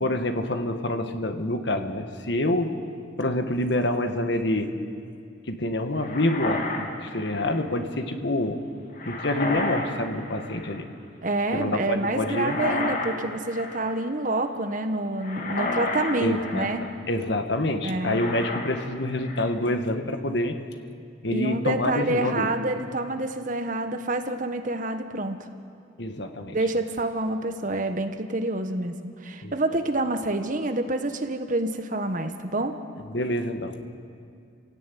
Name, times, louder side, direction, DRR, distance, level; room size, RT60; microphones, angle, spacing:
voice 1, 0.0-2.8 3.2-4.8 5.5-8.6 9.0-10.9 11.5-12.6 16.2-16.7 17.1-20.6 21.2-22.5 26.0-26.6 29.4-29.5 33.1-33.8, left 1 dB, 60° left, 7 dB, 1.6 m, -27 dB
sound 1, 6.0-7.6 9.0-9.9 10.2-10.8 12.2-13.2 13.4-14.0 15.2-16.9 18.0-18.9 19.2-19.6, left 2 dB, 45° left, 2.6 m, -31 dB
voice 2, 11.2-16.9 17.8-18.2 21.3-25.4 26.5-28.9 29.2-32.8, right 2 dB, 40° right, 7 dB, 1.3 m, -27 dB
29.5 x 17.0 x 9.3 m, 2.4 s
head